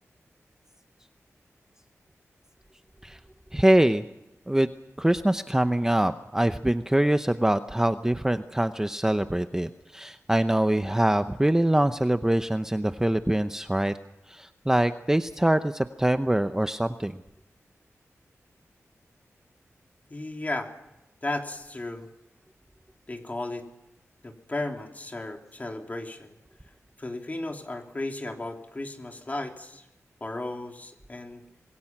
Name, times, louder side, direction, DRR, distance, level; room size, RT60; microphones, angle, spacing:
voice 1, 3.5-4.0 4.5-4.7 5.0-13.9 14.3-17.2, right 1 dB, 10° right, 9 dB, 0.7 m, -24 dB
voice 2, 20.1-20.7 21.2-22.1 23.1-23.7 24.2-26.3 27.0-29.8 30.2-31.4, left 2 dB, 30° left, 3 dB, 3.1 m, -34 dB
26.5 x 21.5 x 6.0 m, 0.91 s
wide cardioid pair, 100°, 5 cm